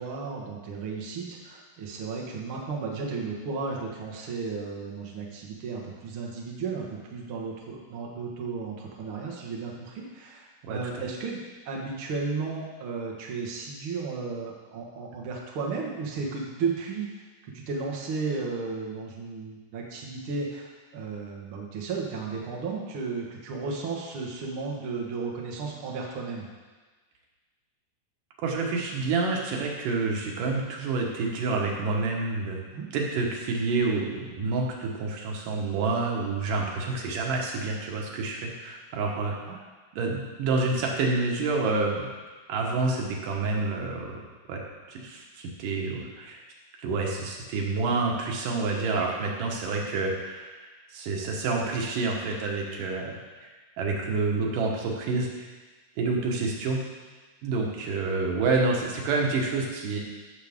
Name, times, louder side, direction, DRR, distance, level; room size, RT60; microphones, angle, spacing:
voice 1, 0.0-11.4 11.7-17.0 17.4-26.5 32.7-32.9 39.5-39.6, right 4 dB, 50° right, -1 dB, 1.9 m, -34 dB
voice 2, 28.4-32.6 32.9-39.3 39.9-42.1 42.5-44.2 44.5-44.6 44.9-46.4 46.8-50.6 50.9-53.5 53.8-55.5 56.0-56.8 57.4-60.0, right 3 dB, 90° right, -1 dB, 2.9 m, -28 dB
14.5 x 6.7 x 3.6 m, 1.3 s
omnidirectional pair, 3.7 m